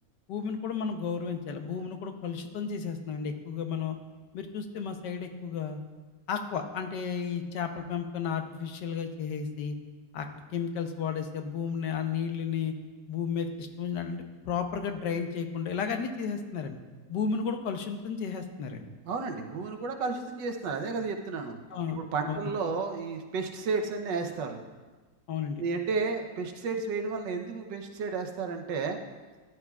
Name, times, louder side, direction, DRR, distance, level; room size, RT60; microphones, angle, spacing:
voice 1, 0.3-4.0 4.3-5.8 6.3-9.7 10.1-10.3 10.5-12.7 13.1-16.8 17.1-18.9 21.7-22.0 22.2-22.5 25.3-25.6, left 6 dB, 75° left, 6 dB, 1.4 m, -33 dB
voice 2, 19.1-21.6 21.9-24.6 25.6-29.0, right 4 dB, 85° right, 4 dB, 1.5 m, -32 dB
14.0 x 11.0 x 2.4 m, 1.3 s
omnidirectional pair, 1.9 m